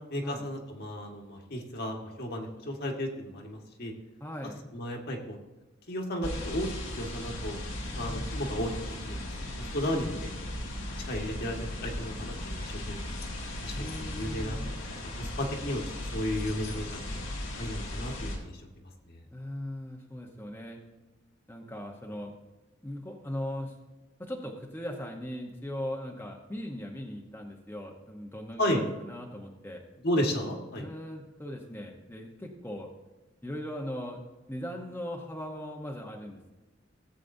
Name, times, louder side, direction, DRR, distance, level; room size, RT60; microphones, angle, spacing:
voice 1, 0.1-3.9 4.7-5.4 5.9-6.7 6.9-7.6 7.9-10.5 11.1-13.1 13.6-14.6 15.2-15.8 16.1-17.2 17.6-18.6 19.1-19.2 28.6-28.8 30.0-30.9, equal, 55° left, 1 dB, 1.6 m, -33 dB
voice 2, 4.2-4.6 7.9-8.4 13.7-14.7 19.3-20.8 21.5-22.3 22.8-23.7 24.2-29.8 30.8-32.9 33.4-34.2 34.5-36.5, equal, 10° left, 0 dB, 0.9 m, -39 dB
sound 1, 6.2-18.4, left 1 dB, 90° left, 1.9 m, -37 dB
17.5 x 8.2 x 2.7 m, 1.1 s
head